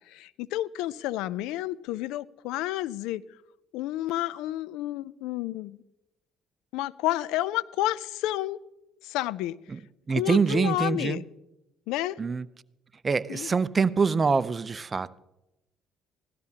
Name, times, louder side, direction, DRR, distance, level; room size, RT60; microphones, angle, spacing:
voice 1, 0.1-3.2 3.7-5.8 6.7-8.6 9.0-9.5 10.1-11.2 11.9-12.2 13.3-13.5, left 15 dB, 80° left, 0.4 m, -30 dB
voice 2, 10.1-11.2 12.2-12.5 13.0-15.2, right 5 dB, 30° right, 0.6 m, -25 dB
17.0 x 13.0 x 2.8 m
supercardioid pair, 85°, 0 cm